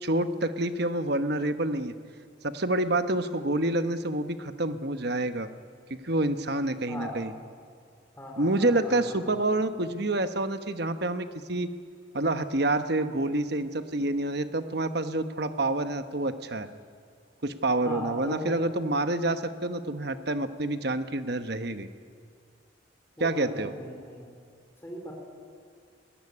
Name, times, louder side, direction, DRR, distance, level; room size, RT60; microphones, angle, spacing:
voice 1, 0.0-1.9 2.4-5.5 5.9-7.3 8.4-11.7 12.1-16.7 17.4-21.9 23.2-23.7, right 2 dB, 55° right, 9 dB, 1.1 m, -28 dB
voice 2, 6.9-7.2 8.2-9.4 17.8-18.5 23.2-24.3 24.8-25.1, left 1 dB, 10° left, -1 dB, 3.8 m, -38 dB
22.0 x 18.0 x 9.8 m, 2.2 s
head